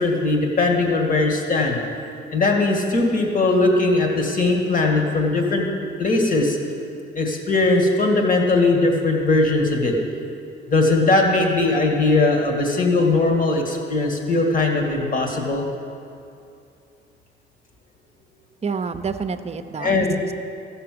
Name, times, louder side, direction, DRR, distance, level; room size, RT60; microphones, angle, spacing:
voice 1, 0.0-1.8 2.3-5.6 6.0-6.6 7.2-10.0 10.7-15.6 19.8-20.1, left 2 dB, 40° left, 1 dB, 2.0 m, -19 dB
voice 2, 18.6-20.3, right 5 dB, 35° right, 9 dB, 0.7 m, -28 dB
14.0 x 6.8 x 7.8 m, 2.6 s
cardioid pair, 90°, 20 cm